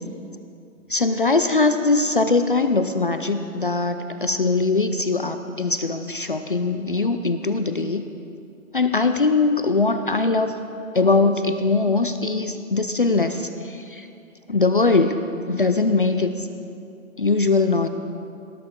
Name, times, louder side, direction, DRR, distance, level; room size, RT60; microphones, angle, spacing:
voice 1, 0.9-8.0 8.7-10.5 10.9-14.1 14.5-15.2 15.5-16.5 17.2-17.9, left 3 dB, 40° left, 8 dB, 0.4 m, -21 dB
17.5 x 12.0 x 3.6 m, 2.6 s
hypercardioid pair, 175°, 41 cm